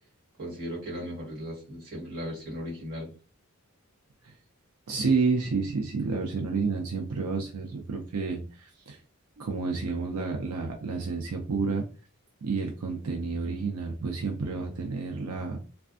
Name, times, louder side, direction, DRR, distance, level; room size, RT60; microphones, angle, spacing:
voice 1, 0.4-3.1, equal, 45° right, -3 dB, 1.6 m, -37 dB
voice 2, 4.9-9.0 9.4-11.8 12.4-15.6, right 4 dB, 90° right, 1 dB, 0.5 m, -30 dB
3.3 x 2.2 x 2.5 m, 0.35 s
head